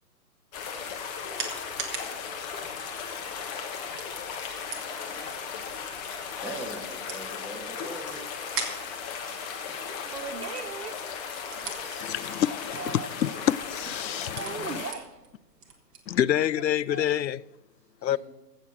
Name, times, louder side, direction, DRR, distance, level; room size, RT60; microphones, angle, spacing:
sound 1, 0.5-14.9, left 6 dB, 25° left, 1.4 m, -36 dB
sound 2, 0.5-16.9, right 5 dB, 20° right, 1.4 m, -44 dB
voice 1, 6.4-8.2 18.0-18.2, right 1 dB, 5° right, 2.4 m, -40 dB
voice 2, 10.1-10.9 12.7-13.1 14.3-15.2 16.9-17.0, right 6 dB, 65° right, 1.5 m, -37 dB
voice 3, 12.0-14.7 16.1-17.4 18.0-18.2, left 11 dB, 85° left, 0.6 m, -27 dB
15.5 x 7.4 x 6.4 m
hypercardioid pair, 135°, 50 cm